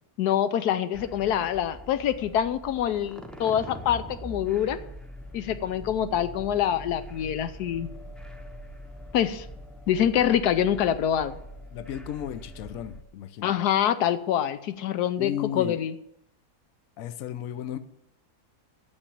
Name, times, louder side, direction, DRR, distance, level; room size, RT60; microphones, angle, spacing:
voice 1, 0.2-4.8 5.3-7.9 9.1-9.5 9.9-11.3 13.4-15.9, left 10 dB, 85° left, 12 dB, 1.2 m, -25 dB
sound 1, 0.9-13.0, equal, ahead, 0.4 m, -43 dB
voice 2, 11.7-13.6 15.2-15.8 17.0-17.8, left 10 dB, 65° left, 11 dB, 1.0 m, -34 dB
8.7 x 6.8 x 8.6 m, 0.76 s
omnidirectional pair, 1.6 m